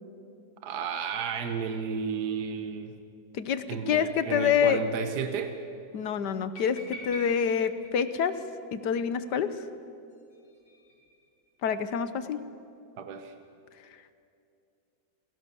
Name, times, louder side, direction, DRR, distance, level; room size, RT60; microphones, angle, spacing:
voice 1, 0.6-2.9 3.7-5.5 13.0-13.3, right 6 dB, 65° right, 7 dB, 1.7 m, -32 dB
voice 2, 3.3-4.8 5.9-8.3 8.7-9.5 11.6-12.4, left 7 dB, 70° left, 12 dB, 1.5 m, -27 dB
sound 1, 4.3-5.1 5.4-5.5 5.7-5.8 6.5-8.6 10.1-11.3, left 1 dB, 90° left, 4.9 m, -45 dB
28.0 x 17.5 x 7.0 m, 2.6 s
omnidirectional pair, 1.9 m